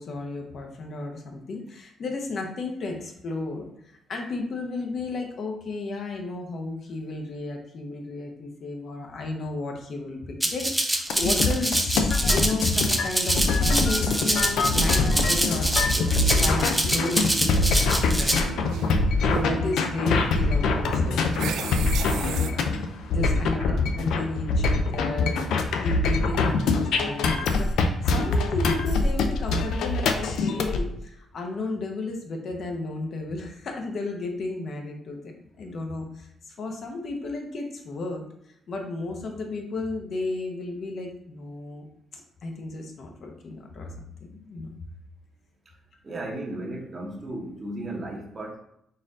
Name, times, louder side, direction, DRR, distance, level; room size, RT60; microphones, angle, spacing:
voice 1, 0.0-17.7 18.1-18.4 19.3-21.3 21.8-22.7 23.1-35.2 35.6-38.2 38.7-41.9 42.1-44.0 44.3-44.7, left 2 dB, 55° left, 2 dB, 0.7 m, -33 dB
Rattle (instrument), 10.4-18.4, right 1 dB, 10° right, 0.5 m, -26 dB
sound 1, 11.1-30.8, left 3 dB, 80° left, 0.4 m, -24 dB
sound 2, 13.8-22.5, right 7 dB, 85° right, 0.3 m, -36 dB
voice 2, 23.3-23.8 46.0-48.6, right 1 dB, 35° right, -1 dB, 1.1 m, -35 dB
4.1 x 2.6 x 3.6 m, 0.74 s
cardioid pair, 90°, 0 cm